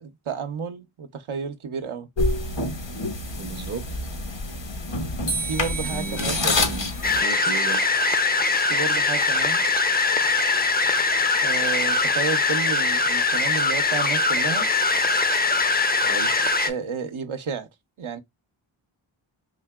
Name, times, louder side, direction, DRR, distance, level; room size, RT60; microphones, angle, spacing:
voice 1, 0.0-2.1 5.4-6.5 8.7-9.7 11.0-11.1 11.4-14.7 16.7-17.7 18.0-18.2, right 5 dB, 75° right, 0.7 m, -31 dB
sound 1, 2.2-7.2, left 2 dB, 60° left, 1.1 m, -27 dB
voice 2, 3.4-4.1 5.9-8.0 16.0-16.3, right 4 dB, 35° right, 0.6 m, -34 dB
sound 2, 5.3-8.4, right 3 dB, 85° left, 1.9 m, -35 dB
sound 3, 7.0-16.7, left 3 dB, 20° left, 0.5 m, -22 dB
3.9 x 2.8 x 2.2 m
cardioid pair, 40°, 49 cm